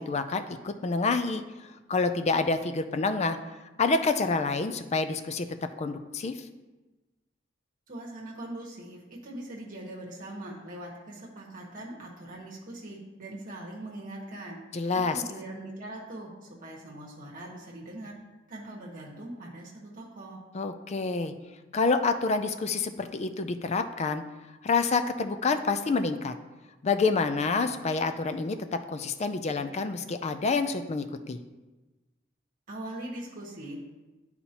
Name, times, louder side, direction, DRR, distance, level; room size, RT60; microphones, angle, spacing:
voice 1, 0.0-1.4 1.9-3.4 3.8-5.5 5.8-6.4 14.7-15.2 20.5-21.3 21.7-24.2 24.6-26.3 26.8-31.4, left 4 dB, 35° left, 9 dB, 0.4 m, -28 dB
voice 2, 7.9-14.6 14.9-18.1 18.5-20.4 32.7-33.8, right 1 dB, 45° right, -3 dB, 1.2 m, -41 dB
11.0 x 4.1 x 2.9 m, 1.1 s
head